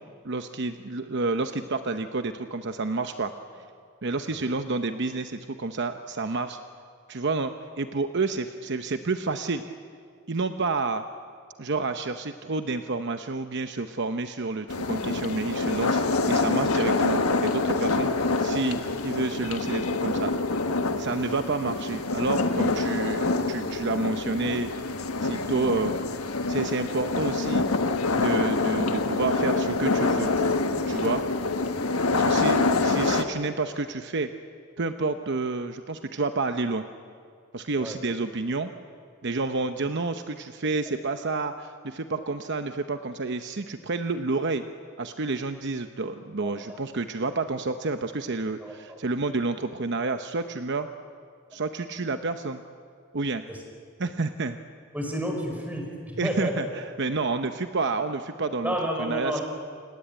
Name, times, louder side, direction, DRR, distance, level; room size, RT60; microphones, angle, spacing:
voice 1, 0.2-3.3 4.0-6.6 7.1-9.6 10.3-11.0 11.6-20.3 21.0-24.7 25.2-26.0 26.5-27.7 28.1-30.3 30.7-31.2 32.1-34.3 34.8-36.8 37.5-38.7 39.2-44.6 45.0-50.9 51.5-52.6 53.1-53.4 54.0-54.6 56.2-59.4, right 3 dB, 55° right, 8 dB, 0.8 m, -29 dB
sound 1, 14.7-33.2, left 3 dB, 85° left, 1.4 m, -26 dB
voice 2, 46.4-46.8 48.6-49.0 53.5-53.6 54.9-56.6 58.6-59.4, equal, 5° right, 2 dB, 5.0 m, -31 dB
29.0 x 18.5 x 8.9 m, 2.2 s
head